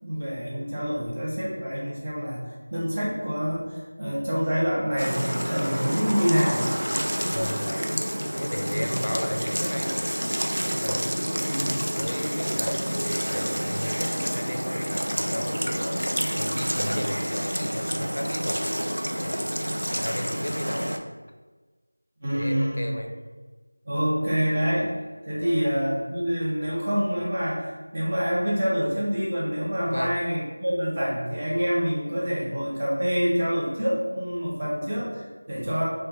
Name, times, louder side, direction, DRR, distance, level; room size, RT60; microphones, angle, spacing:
voice 1, 0.0-6.7 8.7-8.9 11.4-11.7 22.2-22.8 23.8-24.9 25.2-35.8, equal, 25° right, -7 dB, 0.7 m, -26 dB
sound 1, 5.0-21.0, equal, 85° right, 0.4 m, -28 dB
voice 2, 7.3-7.9 8.4-10.1 10.6-11.2 12.0-16.1 16.3-18.8 19.2-19.4 19.9-20.9 22.3-23.1 25.3-25.7 29.8-30.2 35.6-35.8, equal, 65° left, 3 dB, 0.4 m, -34 dB
2.9 x 2.1 x 3.3 m, 1.3 s
figure-of-eight pair, 175°, 0 cm